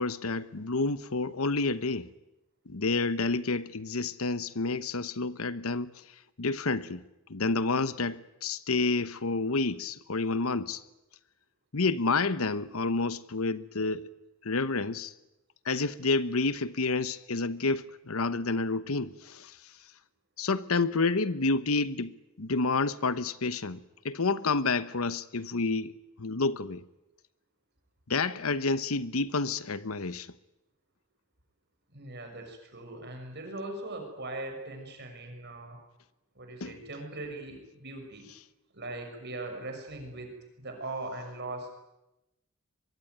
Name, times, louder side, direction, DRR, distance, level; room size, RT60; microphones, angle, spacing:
voice 1, 0.0-2.1 2.7-6.0 6.4-7.0 7.3-10.8 11.7-14.1 14.4-15.1 15.6-19.6 20.4-26.8 28.1-30.3 36.6-36.8, left 3 dB, 75° left, 1.0 m, -29 dB
voice 2, 31.9-35.8 36.3-38.3 38.7-41.7, right 2 dB, 50° right, 6.2 m, -40 dB
24.0 x 23.0 x 9.4 m
head